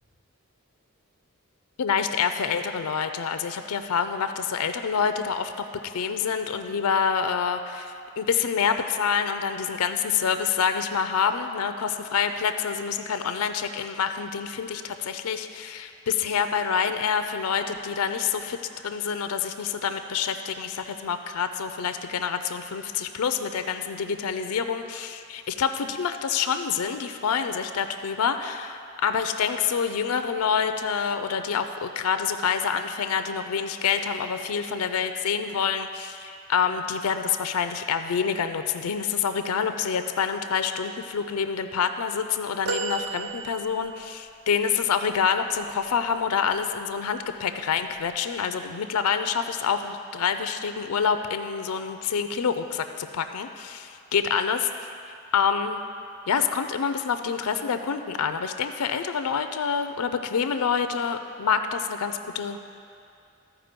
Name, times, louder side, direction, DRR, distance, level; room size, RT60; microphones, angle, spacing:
voice 1, 1.8-5.5 5.8-54.7 55.3-55.8 56.3-62.6, left 6 dB, 85° left, 8 dB, 0.4 m, -27 dB
sound 1, 42.7-44.1 46.5-46.6 48.0-48.1, right 4 dB, 50° right, 0.6 m, -32 dB
14.0 x 4.7 x 5.1 m, 2.4 s
head